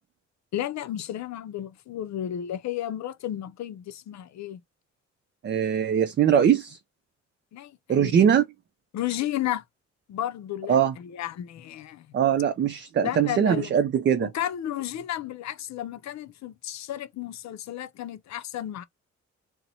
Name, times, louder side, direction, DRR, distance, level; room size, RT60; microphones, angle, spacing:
voice 1, 0.5-4.6 7.5-8.2 8.9-9.6 10.1-12.1 13.0-13.7 14.2-18.8, left 12 dB, 70° left, 0.5 m, -33 dB
voice 2, 5.4-6.8 7.9-8.5 10.7-10.9 12.1-14.3, right 8 dB, 40° right, 0.4 m, -21 dB
2.7 x 2.1 x 4.0 m
cardioid pair, 90°, 29 cm